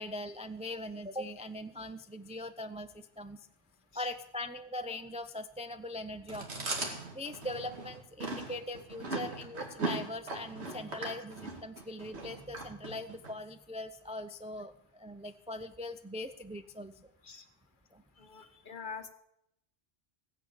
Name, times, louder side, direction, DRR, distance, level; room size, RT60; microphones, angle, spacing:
voice 1, 0.0-3.5 3.9-6.7 7.1-17.1 17.9-18.6, left 1 dB, 10° right, 9 dB, 0.3 m, -41 dB
Chewing mastication, 6.3-13.3, right 3 dB, 75° right, 2.4 m, -39 dB
voice 2, 18.2-19.1, left 5 dB, 50° left, 8 dB, 1.2 m, -45 dB
17.0 x 8.2 x 7.1 m, 0.80 s
omnidirectional pair, 1.1 m